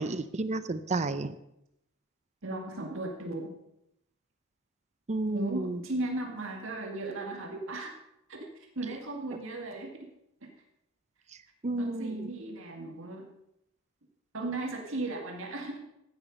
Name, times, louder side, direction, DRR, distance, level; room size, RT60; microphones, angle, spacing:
voice 1, 0.0-1.3 5.1-5.8 11.6-12.3, right 2 dB, 30° right, 13 dB, 0.5 m, -31 dB
voice 2, 2.4-3.5 5.3-7.9 8.3-10.1 10.4-10.5 11.8-13.3 14.3-15.8, right 2 dB, 65° right, 1 dB, 2.2 m, -36 dB
14.0 x 9.8 x 5.4 m, 0.82 s
head